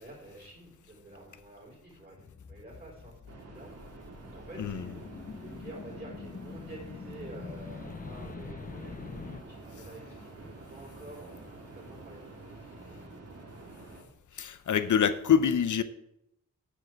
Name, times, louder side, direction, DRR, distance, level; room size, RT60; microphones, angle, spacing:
voice 1, 0.0-3.8 4.2-5.0 5.4-11.4 11.7-12.3, right 1 dB, 30° right, 4.5 m, -49 dB
sound 1, 2.2-9.4, left 5 dB, 30° left, 0.4 m, -45 dB
sound 2, 3.3-14.0, right 3 dB, 55° right, 2.1 m, -48 dB
voice 2, 14.3-15.8, left 8 dB, 75° left, 0.8 m, -25 dB
10.0 x 8.7 x 4.6 m
wide cardioid pair, 160°, 31 cm